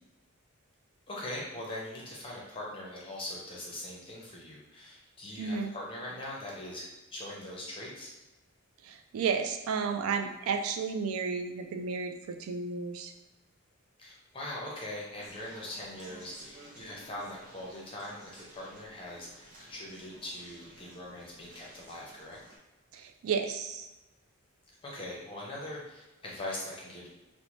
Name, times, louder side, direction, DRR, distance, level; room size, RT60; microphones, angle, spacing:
voice 1, 1.1-6.8 7.1-8.1 14.0-22.4 24.8-27.1, left 1 dB, 25° left, -4 dB, 0.6 m, -41 dB
voice 2, 5.4-5.7 8.8-13.1 22.9-23.9, right 5 dB, 75° right, 7 dB, 0.3 m, -32 dB
Conversation, 15.2-22.6, right 1 dB, 35° right, 0.6 m, -54 dB
2.7 x 2.0 x 3.0 m, 1.0 s
head